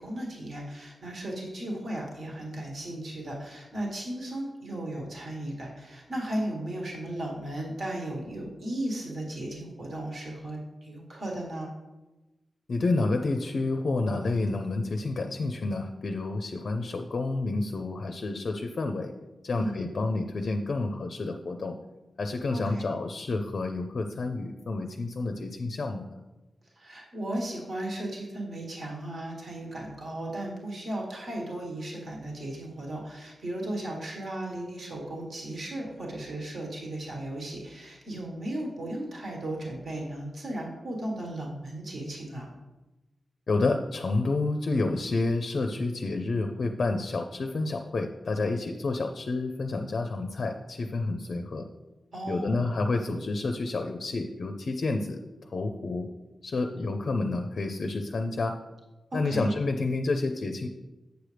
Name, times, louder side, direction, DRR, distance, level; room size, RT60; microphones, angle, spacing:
voice 1, 0.0-11.7 19.5-19.8 22.5-22.9 26.7-42.5 52.1-52.6 59.1-59.5, right 1 dB, 50° right, -2 dB, 1.5 m, -35 dB
voice 2, 12.7-19.1 19.4-21.8 22.2-26.2 43.5-51.7 52.3-55.2 55.5-56.1 56.4-58.6 59.1-60.7, left 3 dB, 50° left, 5 dB, 0.5 m, -29 dB
8.0 x 6.4 x 3.3 m, 1.1 s
wide cardioid pair, 175°, 0 cm